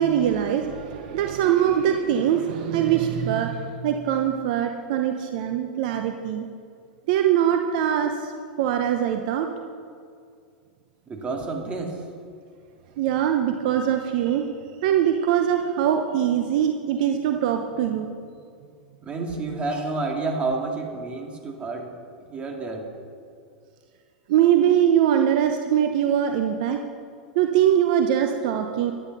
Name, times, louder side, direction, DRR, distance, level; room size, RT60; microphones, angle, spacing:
voice 1, 0.0-6.5 7.1-8.3 8.6-9.5 13.0-14.5 14.8-18.1 24.3-26.8 27.3-28.9, right 9 dB, 60° right, 5 dB, 0.8 m, -22 dB
voice 2, 11.1-12.0 19.0-21.9 22.3-22.9, right 3 dB, 25° right, 1 dB, 2.4 m, -29 dB
10.5 x 10.5 x 5.5 m, 2.2 s
hypercardioid pair, 105°, 5 cm